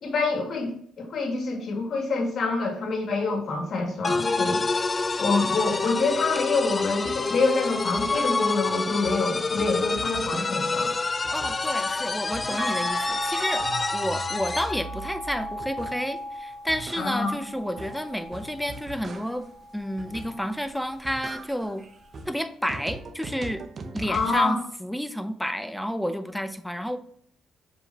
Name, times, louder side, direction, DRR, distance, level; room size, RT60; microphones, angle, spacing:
voice 1, 0.0-4.7 5.2-10.9 17.0-17.4 24.1-24.6, left 3 dB, 60° left, 2 dB, 2.1 m, -26 dB
sound 1, 4.0-14.8, left 3 dB, 30° left, 0.3 m, -27 dB
sound 2, 7.0-7.4 7.8-8.8 9.0-10.8 11.2-11.9 12.2-13.1 13.4-16.1 16.5-19.5 20.0-20.6 20.9-24.5, right 3 dB, 45° right, 0.8 m, -41 dB
voice 2, 11.3-13.6 13.9-19.5 19.7-21.8 22.3-23.6 23.9-27.0, equal, ahead, 9 dB, 0.7 m, -30 dB
sound 3, 12.6-18.9 19.4-20.8 22.2-22.3, equal, 25° right, 1.5 m, -35 dB
7.0 x 5.5 x 2.9 m, 0.62 s
cardioid pair, 90°, 0 cm